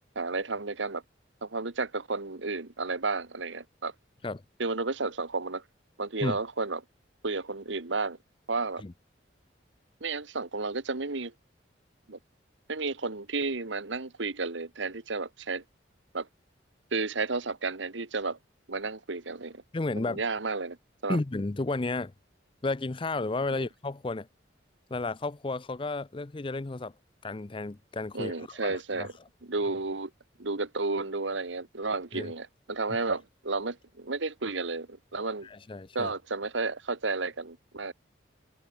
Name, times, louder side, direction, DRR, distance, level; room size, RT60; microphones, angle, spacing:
voice 1, 0.1-1.0 1.4-3.9 4.6-5.6 6.0-6.8 7.2-8.2 8.5-8.8 10.0-11.3 12.1-12.2 12.7-15.6 16.1-16.3 16.9-18.4 18.7-19.6 19.9-20.8 21.0-21.2 23.5-23.7 28.1-29.1 29.4-30.1 30.4-35.5 35.9-37.9, right 3 dB, 75° right, 1.6 m, -32 dB
voice 2, 19.7-20.2 21.1-22.1 22.6-24.3 24.9-26.9 27.2-29.1 32.1-32.3 35.4-36.1, left 2 dB, 25° left, 0.5 m, -32 dB
head